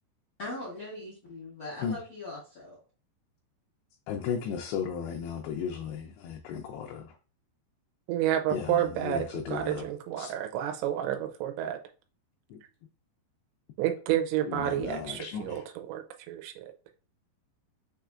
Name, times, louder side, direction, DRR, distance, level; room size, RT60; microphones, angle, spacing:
voice 1, 0.4-2.8, left 2 dB, 65° left, -6 dB, 1.1 m, -40 dB
voice 2, 4.1-7.2 8.5-9.8 10.2-10.3 12.5-12.6 14.5-15.6, left 7 dB, 85° left, 2 dB, 2.3 m, -35 dB
voice 3, 8.1-11.8 13.8-16.7, right 11 dB, 85° right, 6 dB, 2.9 m, -30 dB
6.5 x 3.1 x 2.4 m, 0.37 s
omnidirectional pair, 5.1 m